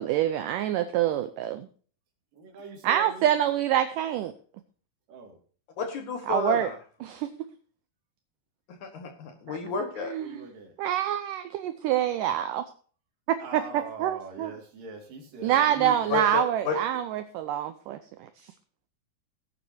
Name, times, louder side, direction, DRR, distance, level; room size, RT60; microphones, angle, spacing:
voice 1, 0.0-1.7 2.8-4.3 6.3-6.7 7.0-7.3 9.5-9.6 10.0-10.4 10.8-12.6 13.3-14.5 15.4-18.0, right 11 dB, 85° right, 10 dB, 1.9 m, -26 dB
voice 2, 2.4-3.3 5.1-5.4 9.6-9.8 10.2-10.7 13.4-16.3, right 3 dB, 60° right, 2 dB, 3.7 m, -42 dB
voice 3, 5.8-6.8 8.8-10.1 16.1-16.7, left 5 dB, 60° left, 4 dB, 2.4 m, -31 dB
18.5 x 9.1 x 2.7 m, 0.42 s
omnidirectional pair, 4.5 m